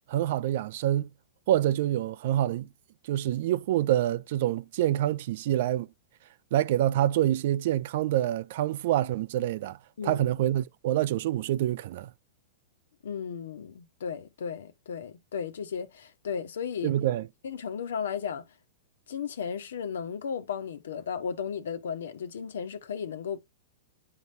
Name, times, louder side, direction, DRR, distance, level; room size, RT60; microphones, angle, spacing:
voice 1, 0.1-1.1 1.5-2.7 3.1-5.9 6.5-9.8 10.0-12.1 16.8-17.3, right 12 dB, 60° right, 0.5 m, -26 dB
voice 2, 10.0-10.3 13.0-16.9 17.4-18.5 19.1-23.4, left 7 dB, 75° left, 1.3 m, -35 dB
9.6 x 3.9 x 2.6 m
hypercardioid pair, 115°, 0 cm